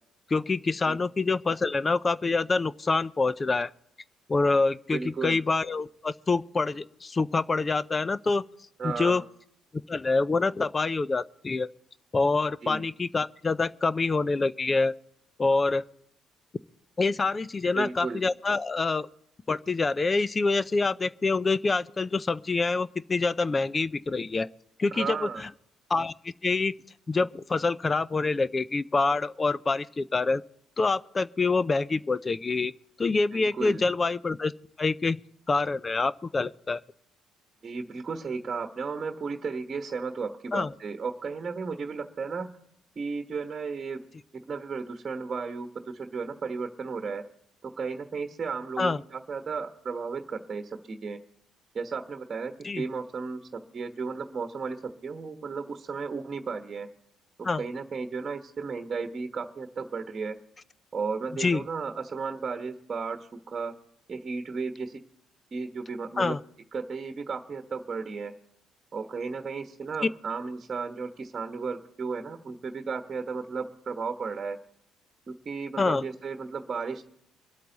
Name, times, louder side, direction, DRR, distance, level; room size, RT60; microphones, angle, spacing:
voice 1, 0.3-3.7 4.3-8.4 8.8-9.2 9.9-11.7 12.1-14.9 15.4-15.8 17.0-19.1 19.5-24.5 24.8-25.5 25.9-26.7 27.1-30.4 30.8-32.7 33.0-34.5 34.8-35.2 35.5-36.8 40.5-40.7 48.8-49.0 52.6-52.8 57.4-57.6 61.4-61.6 66.2-66.4 75.8-76.0, left 3 dB, 30° left, 0.5 m, -26 dB
voice 2, 4.9-5.4 8.8-9.2 12.6-12.8 17.7-18.2 24.9-25.4 33.3-33.8 37.6-42.5 43.0-44.0 44.5-47.2 47.6-51.2 51.7-56.9 57.5-60.3 60.9-63.7 64.1-65.0 65.5-66.3 66.7-68.3 68.9-74.6 75.3-77.0, right 5 dB, 40° right, 1.2 m, -34 dB
24.0 x 8.4 x 4.0 m
supercardioid pair, 65°, 0 cm